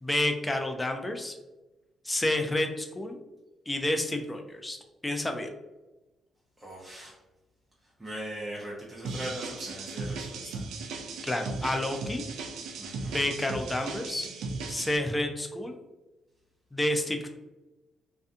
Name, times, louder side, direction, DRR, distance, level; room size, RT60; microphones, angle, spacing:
voice 1, 0.0-1.4 2.0-3.2 3.7-4.8 5.0-5.5 11.2-12.2 13.0-14.3 14.7-15.7 16.7-17.3, left 1 dB, 15° left, 4 dB, 0.4 m, -29 dB
voice 2, 6.6-7.2 7.8-10.7 12.8-13.3, equal, 25° right, -5 dB, 0.7 m, -40 dB
sound 1, 9.0-15.0, right 3 dB, 80° right, 0.4 m, -37 dB
2.4 x 2.3 x 2.5 m, 1.1 s
supercardioid pair, 60°, 0 cm